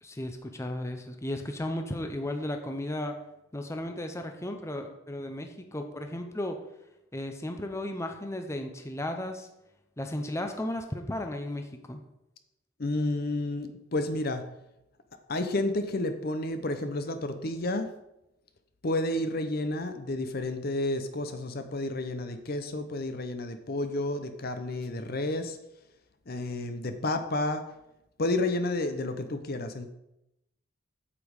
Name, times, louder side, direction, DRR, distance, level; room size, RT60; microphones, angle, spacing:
voice 1, 0.0-3.2 3.5-6.6 7.1-9.5 10.0-12.0, left 1 dB, 15° left, 5 dB, 0.7 m, -35 dB
voice 2, 12.8-14.4 15.3-17.9 18.8-25.6 26.3-27.6 28.2-29.9, left 2 dB, 50° left, 9 dB, 0.7 m, -31 dB
8.5 x 7.3 x 4.8 m, 0.87 s
head